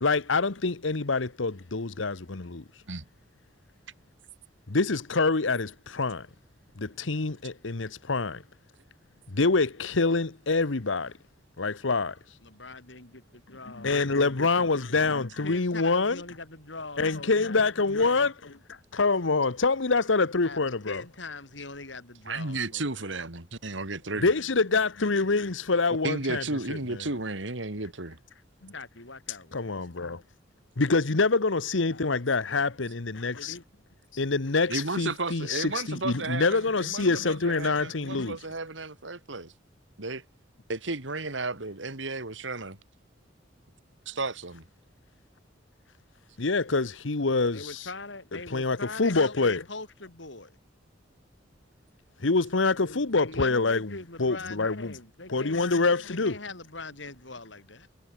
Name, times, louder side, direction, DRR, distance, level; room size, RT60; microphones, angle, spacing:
voice 1, 0.0-2.6 4.7-6.3 6.8-8.4 9.3-11.1 11.6-12.2 13.8-16.2 17.0-21.0 24.2-26.4 26.7-26.8 28.6-28.7 29.5-30.2 30.8-33.6 34.1-38.4 46.4-47.9 48.5-49.6 52.2-53.9 54.2-54.9 55.3-56.3, left 3 dB, 85° left, 1.2 m, -26 dB
voice 2, 12.4-14.2 15.0-17.8 20.4-23.0 28.7-29.7 31.9-32.7 33.2-33.6 47.5-50.6 52.8-55.6 56.1-57.9, left 3 dB, 70° left, 6.3 m, -42 dB
voice 3, 22.3-24.3 26.0-28.2 34.7-39.5 40.0-40.2 40.7-42.8 44.1-44.7, right 3 dB, 75° right, 3.0 m, -33 dB
head